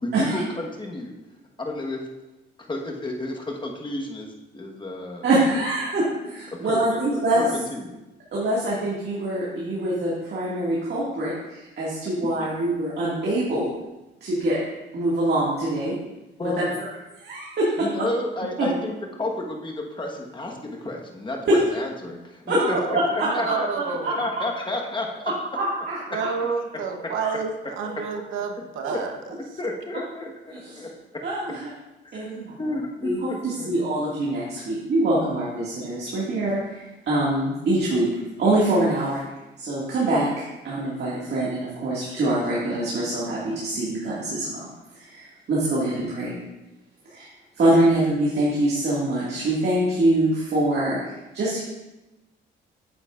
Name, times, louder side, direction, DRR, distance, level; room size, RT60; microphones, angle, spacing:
voice 1, 0.0-1.1 1.6-2.0 2.6-4.3 4.5-5.2 6.5-8.0 12.4-12.7 16.4-16.7 17.8-23.7 24.2-25.3 27.0-27.1 28.0-28.1 28.3-28.4 28.9-31.2 32.1-33.7, left 2 dB, 25° left, 0 dB, 1.3 m, -31 dB
voice 2, 5.2-7.5 8.3-13.7 14.2-14.6 14.9-16.0 17.2-17.7 18.6-18.7 21.5-21.6 22.5-22.6 23.5-23.6 24.0-24.1 25.6-26.3 27.2-27.3 28.8-28.9 30.5-30.8 31.2-31.7 32.1-32.6 33.0-38.1 38.4-39.2 39.6-44.7 44.9-46.4 47.1-47.2 47.6-51.6, right 1 dB, 55° right, -7 dB, 2.1 m, -24 dB
voice 3, 22.6-23.0 23.3-24.2 26.1-27.5 27.8-29.1, right 5 dB, 80° right, 4 dB, 1.0 m, -29 dB
9.0 x 7.9 x 2.5 m, 1.0 s
cardioid pair, 90°, 20 cm